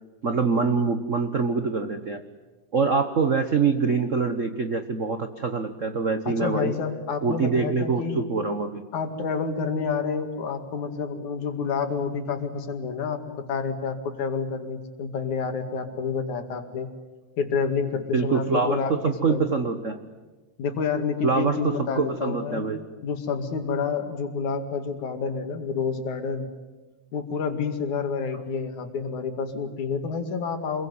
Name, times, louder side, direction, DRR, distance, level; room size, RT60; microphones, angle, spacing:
voice 1, 0.2-2.2 2.7-6.7 7.2-8.8 18.1-20.0 21.2-22.8, right 4 dB, 85° right, 8 dB, 0.6 m, -25 dB
voice 2, 6.3-8.2 8.9-16.9 17.4-19.4 20.6-22.7 23.0-26.5 27.1-30.9, left 5 dB, 75° left, 6 dB, 3.6 m, -29 dB
26.5 x 22.0 x 9.6 m, 1.2 s
omnidirectional pair, 3.4 m